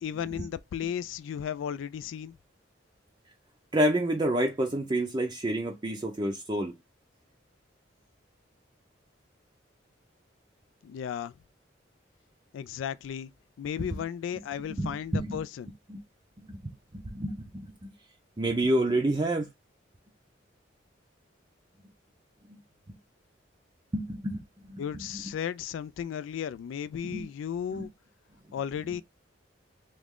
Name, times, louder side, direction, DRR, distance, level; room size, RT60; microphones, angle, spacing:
voice 1, 0.0-2.4 10.8-11.3 12.5-13.3 13.6-15.7 24.8-27.9 28.5-29.0, left 8 dB, 85° left, 0.3 m, -34 dB
voice 2, 3.7-6.7 14.7-15.4 15.9-16.0 16.4-16.6 16.9-17.7 18.4-19.5 22.5-22.6 23.9-24.4 24.7-25.2 27.0-27.2 27.7-27.9, right 1 dB, 25° right, 0.5 m, -29 dB
3.1 x 2.4 x 3.6 m
head